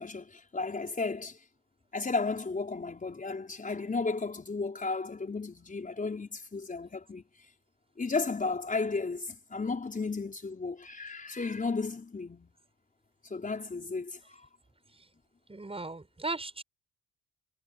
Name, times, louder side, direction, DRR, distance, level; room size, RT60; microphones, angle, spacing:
voice 1, 0.0-1.4 1.9-7.2 8.0-12.5 13.2-14.4, left 4 dB, 25° left, 5.0 m, -34 dB
voice 2, 15.5-16.6, right 2 dB, 20° right, 7.1 m, -37 dB
cardioid pair, 90°, 30 cm